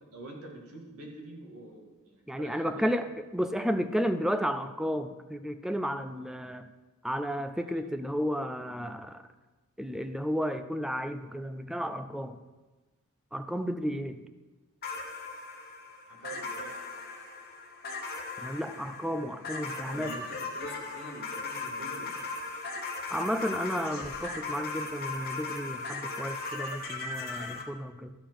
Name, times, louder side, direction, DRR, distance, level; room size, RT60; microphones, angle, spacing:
voice 1, 0.1-2.9 7.7-7.8 16.1-16.7 19.9-22.3, right 2 dB, 80° right, 0 dB, 2.1 m, -46 dB
voice 2, 2.3-3.1 3.3-6.7 7.0-9.2 9.8-12.4 13.3-14.2 18.4-20.2 23.1-28.1, equal, ahead, 9 dB, 0.4 m, -32 dB
sound 1, 14.8-27.6, left 3 dB, 45° left, 1.1 m, -38 dB
13.0 x 4.4 x 6.1 m, 1.2 s
head